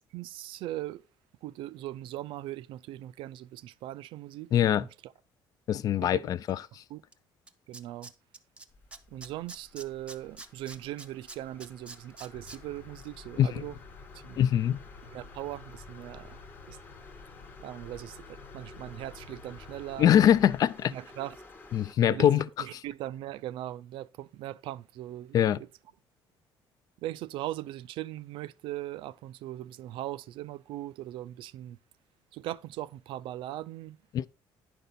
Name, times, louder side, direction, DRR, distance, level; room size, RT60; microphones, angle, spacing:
voice 1, 0.1-1.0 1.4-4.5 4.7-5.1 6.0-6.3 6.9-7.0 7.7-8.1 9.1-13.8 14.1-14.4 15.0-16.8 17.6-20.2 20.9-21.4 22.1-22.3 22.6-25.7 27.0-31.8 32.3-34.0, right 14 dB, 80° right, 0.4 m, -39 dB
voice 2, 4.5-4.9 5.7-6.8 13.4-13.6 14.4-14.8 20.0-20.9 21.7-22.4 25.3-25.6 34.1-34.3, left 10 dB, 45° left, 0.3 m, -23 dB
Tools, 7.1-7.2 7.5-8.6 8.9-12.6 13.0-13.1, right 3 dB, 15° right, 0.5 m, -45 dB
sound 1, 8.7-21.9, left 2 dB, 20° left, 0.9 m, -53 dB
sound 2, 12.3-20.7, left 5 dB, 75° left, 1.1 m, -50 dB
10.0 x 5.3 x 4.1 m
cardioid pair, 165°, 9 cm